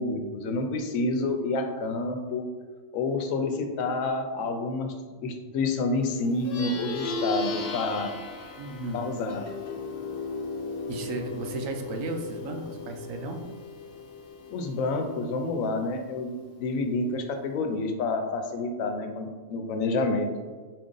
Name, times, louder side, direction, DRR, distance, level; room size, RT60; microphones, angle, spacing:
voice 1, 0.0-2.4 2.9-4.9 5.2-8.1 8.9-9.5 14.5-16.3 16.6-20.3, left 3 dB, 85° left, 5 dB, 1.0 m, -28 dB
Plucked string instrument, 6.3-16.0, left 3 dB, 55° left, 0.7 m, -36 dB
voice 2, 8.6-9.0 10.9-13.4, right 2 dB, 80° right, 4 dB, 1.0 m, -34 dB
4.4 x 2.5 x 3.7 m, 1.4 s
omnidirectional pair, 1.4 m